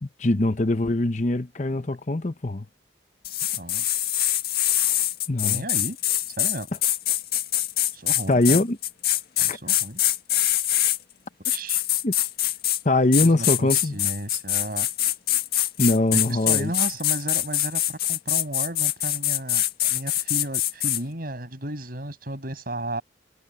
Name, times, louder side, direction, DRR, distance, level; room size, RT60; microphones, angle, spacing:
voice 1, 0.0-2.7 5.3-5.6 8.3-8.8 9.5-9.6 12.0-12.1 12.8-14.0 15.8-16.7, left 2 dB, 40° left, 0.8 m, -22 dB
sound 1, 3.2-11.0 11.4-12.8 13.1-21.0, left 13 dB, 55° left, 1.9 m, -24 dB
voice 2, 3.5-3.8 5.4-6.0 6.4-6.7 7.9-8.6 9.4-10.0 11.4-11.8 13.2-14.9 16.1-23.0, right 1 dB, 55° right, 6.7 m, -34 dB
head